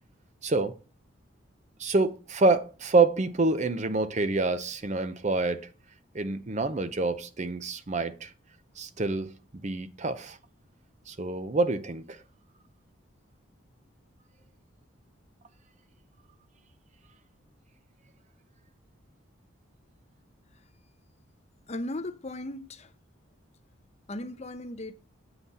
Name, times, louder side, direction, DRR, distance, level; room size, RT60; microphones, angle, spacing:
voice 1, 0.4-0.7 1.8-5.7 6.1-8.3 8.8-9.3 9.6-10.4 11.1-12.2, right 3 dB, 35° right, 0.6 m, -27 dB
voice 2, 21.7-22.9 24.1-24.9, left 1 dB, 30° left, 0.7 m, -36 dB
7.8 x 5.6 x 4.1 m
head